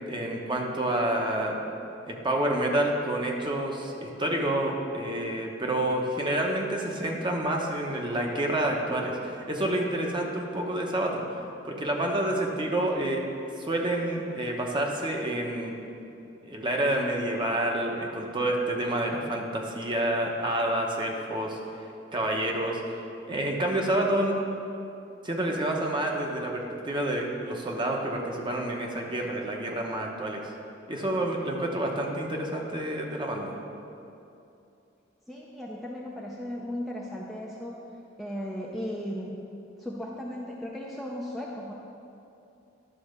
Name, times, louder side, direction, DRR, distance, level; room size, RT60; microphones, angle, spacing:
voice 1, 0.1-1.5 2.1-11.2 11.7-13.2 13.6-15.8 16.4-21.6 22.1-22.8 23.3-24.4 25.2-30.4 30.9-33.5, right 1 dB, 25° right, 0 dB, 1.0 m, -28 dB
voice 2, 35.3-37.8 38.2-39.4 39.8-41.7, equal, ahead, -3 dB, 0.6 m, -36 dB
11.5 x 4.2 x 6.6 m, 2.8 s
head